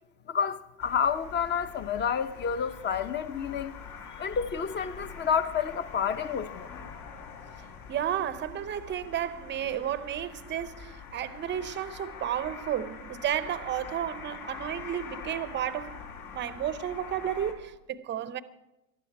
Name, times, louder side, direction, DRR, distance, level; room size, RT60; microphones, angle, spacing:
voice 1, 0.3-3.7 4.2-6.9, left 7 dB, 20° left, 0.9 m, -29 dB
sound 1, 0.8-17.5, left 6 dB, 60° left, 4.1 m, -44 dB
voice 2, 7.9-16.1 16.3-18.4, right 10 dB, 25° right, 0.7 m, -32 dB
19.5 x 13.0 x 4.8 m
supercardioid pair, 120°, 48 cm